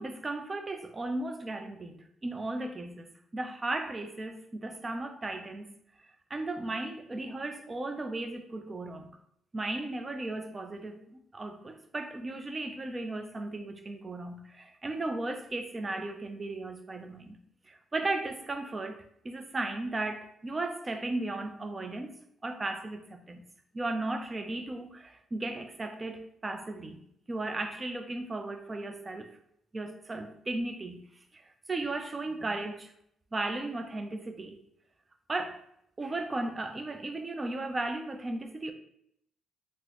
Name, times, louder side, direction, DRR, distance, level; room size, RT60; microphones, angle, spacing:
voice 1, 0.0-5.7 6.3-9.1 9.5-17.4 17.7-22.2 22.4-23.4 23.7-27.0 27.3-29.3 29.7-31.0 31.7-32.9 33.3-34.6 35.3-35.6 36.0-38.7, right 2 dB, 25° right, 0.4 m, -36 dB
3.7 x 2.0 x 2.9 m
cardioid pair, 90°, 0 cm